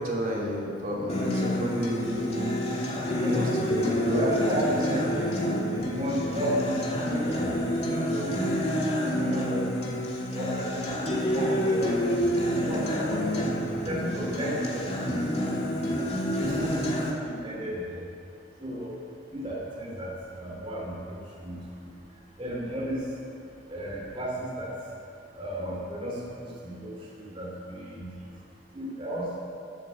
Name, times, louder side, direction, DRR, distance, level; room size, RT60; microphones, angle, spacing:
voice 1, 0.0-2.5 3.1-4.8 16.4-16.9, equal, 50° right, -4 dB, 3.2 m, -30 dB
Acoustic guitar, 1.1-17.1, equal, 35° left, 2.6 m, -28 dB
voice 2, 4.0-5.3 5.7-8.4 9.2-10.0 10.3-12.0 12.3-13.5 13.8-15.3 15.7-16.0 17.3-18.0 18.6-19.0 19.3-21.9 22.4-23.0 23.7-24.7 25.3-28.1 28.7-29.4, equal, 30° right, -4 dB, 2.8 m, -33 dB
13.0 x 12.5 x 7.7 m, 2.7 s
head